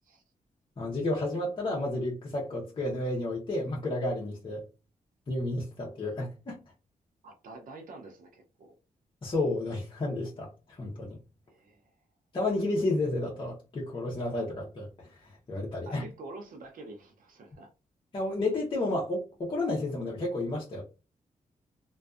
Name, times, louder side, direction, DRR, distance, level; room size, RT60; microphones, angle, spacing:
voice 1, 0.8-4.6 5.3-6.6 9.2-11.2 12.3-16.0 18.1-20.8, left 2 dB, 35° left, -4 dB, 0.8 m, -31 dB
voice 2, 7.2-8.7 11.5-11.9 15.9-17.7, right 2 dB, 75° right, 3 dB, 0.5 m, -47 dB
2.5 x 2.3 x 2.3 m, 0.32 s
cardioid pair, 95°, 14 cm